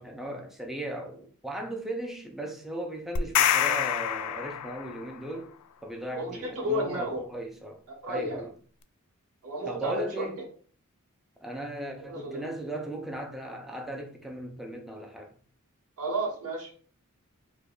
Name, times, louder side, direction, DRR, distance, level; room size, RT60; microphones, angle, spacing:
voice 1, 0.0-5.5 5.8-7.8 8.1-8.5 9.7-10.4 11.4-15.4, right 1 dB, ahead, 0.4 m, -37 dB
sound 1, 3.2-5.1, left 10 dB, 90° left, 0.3 m, -26 dB
voice 2, 6.1-7.2 7.9-8.5 9.4-10.2 12.1-12.4 16.0-16.8, right 1 dB, 80° right, 1.1 m, -32 dB
4.7 x 2.2 x 2.3 m
head